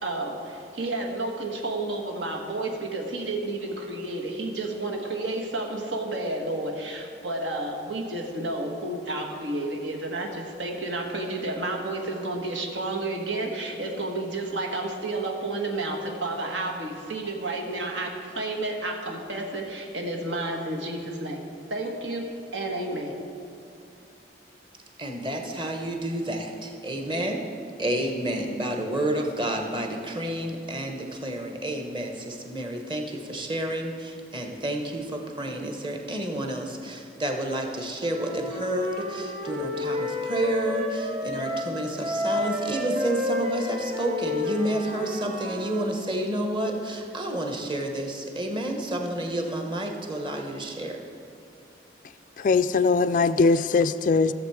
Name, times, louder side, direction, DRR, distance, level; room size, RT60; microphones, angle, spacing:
voice 1, 0.0-22.3 22.5-23.2, right 2 dB, 80° right, 1 dB, 1.4 m, -31 dB
voice 2, 25.0-27.4 27.8-51.0, right 1 dB, 25° right, 3 dB, 1.1 m, -30 dB
Wind instrument woodwind instrument, 38.0-41.7 42.0-46.0, left 1 dB, 40° right, 2.5 m, -31 dB
voice 3, 52.4-54.3, left 4 dB, 45° left, 12 dB, 0.3 m, -21 dB
15.0 x 7.2 x 4.8 m, 2.7 s
head